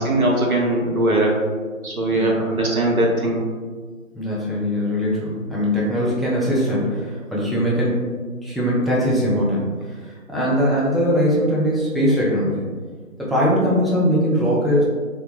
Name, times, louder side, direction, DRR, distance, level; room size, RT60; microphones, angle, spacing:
voice 1, 0.0-1.4 1.8-3.4, right 1 dB, 85° right, -2 dB, 0.8 m, -20 dB
voice 2, 4.1-12.7 13.2-14.8, equal, ahead, -7 dB, 0.4 m, -21 dB
2.2 x 2.0 x 3.0 m, 1.5 s
figure-of-eight pair, 175°, 42 cm